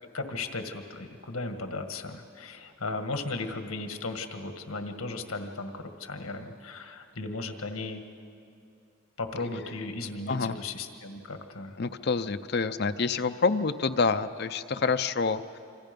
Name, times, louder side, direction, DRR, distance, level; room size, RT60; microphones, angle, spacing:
voice 1, 0.0-8.0 9.2-11.8, left 3 dB, 85° left, 6 dB, 1.7 m, -36 dB
voice 2, 11.8-15.6, left 4 dB, 50° left, 10 dB, 0.6 m, -27 dB
27.0 x 25.5 x 5.3 m, 2.5 s
head